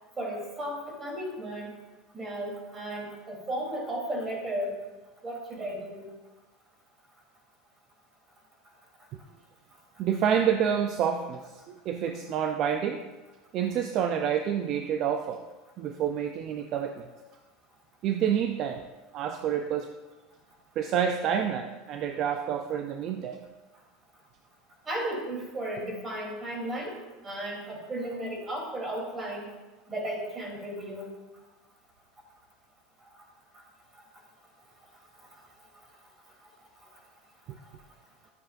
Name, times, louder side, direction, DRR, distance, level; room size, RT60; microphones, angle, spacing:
voice 1, 0.2-1.7 2.1-4.8 5.2-6.1 24.8-27.0 27.2-29.5 29.9-31.1, right 1 dB, 25° right, -1 dB, 3.5 m, -34 dB
voice 2, 10.0-13.0 13.5-15.4 15.8-17.1 18.0-18.8 19.1-19.9 20.8-23.4, right 8 dB, 50° right, 6 dB, 0.5 m, -28 dB
12.5 x 8.8 x 2.6 m, 1.2 s
supercardioid pair, 105°, 0 cm